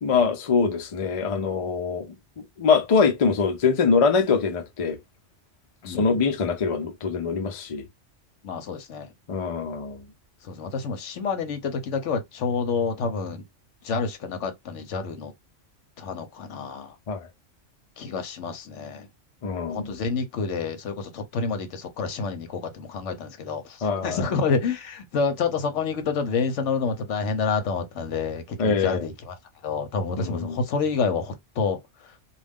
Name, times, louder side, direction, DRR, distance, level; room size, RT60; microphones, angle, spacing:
voice 1, 0.0-5.0 5.8-7.9 9.3-10.0 17.1-17.3 19.4-19.9 23.8-24.3 28.6-29.1 30.2-30.6, left 5 dB, 55° left, 0.3 m, -24 dB
voice 2, 5.8-6.2 8.4-9.1 10.4-13.4 13.8-15.3 16.0-16.9 18.0-19.1 19.7-29.4 29.6-32.1, left 5 dB, 70° left, 1.0 m, -28 dB
2.4 x 2.3 x 3.4 m
omnidirectional pair, 1.3 m